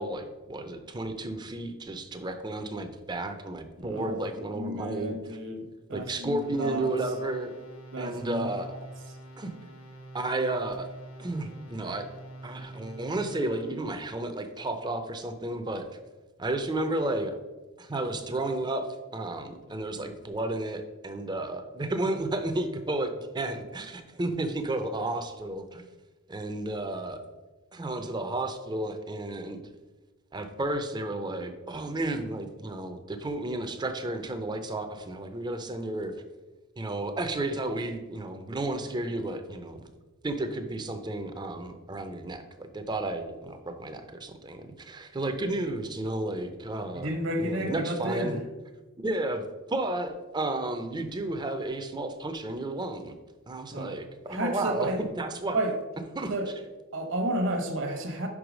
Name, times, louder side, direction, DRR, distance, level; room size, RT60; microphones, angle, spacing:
voice 1, 0.0-5.4 5.9-7.5 8.0-8.7 9.4-9.5 10.1-10.9 11.2-12.1 12.4-15.9 16.4-17.4 17.8-25.9 26.3-27.2 27.7-29.6 30.3-36.1 36.8-39.9 40.2-48.4 49.0-53.1 53.5-55.6 56.2-56.3, right 2 dB, 20° right, 7 dB, 0.5 m, -32 dB
voice 2, 3.8-6.9 7.9-8.4 8.7-8.8 46.9-48.4 53.7-53.9 54.3-55.0 55.5-55.7 56.3-56.5 56.9-58.3, right 1 dB, 55° right, 4 dB, 1.1 m, -31 dB
sound 1, 6.4-14.0, right 1 dB, 90° left, 1.8 m, -45 dB
5.6 x 4.8 x 5.0 m, 1.2 s
head